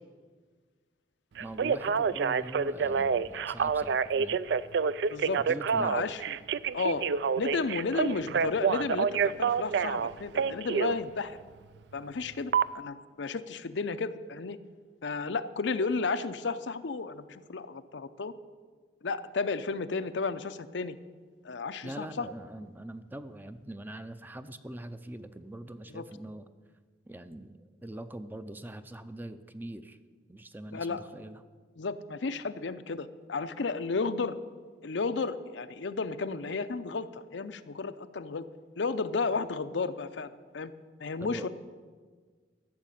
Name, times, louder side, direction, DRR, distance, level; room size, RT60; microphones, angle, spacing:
voice 1, 1.4-4.4 5.5-6.0 21.8-26.5 27.1-30.0 30.3-31.4 41.2-41.5, right 1 dB, 10° right, 11 dB, 0.5 m, -43 dB
Telephone, 1.4-11.0 12.5-12.6, right 6 dB, 65° right, 0.4 m, -28 dB
voice 2, 5.1-5.4 5.8-6.3 6.7-7.0 7.4-11.4 11.9-14.6 15.0-18.3 19.0-21.0 21.4-22.3 25.9-26.0 30.7-31.0 31.8-34.4 34.8-38.5 38.8-40.7 41.0-41.5, left 4 dB, 80° left, 11 dB, 0.6 m, -33 dB
13.5 x 6.6 x 8.9 m, 1.5 s
head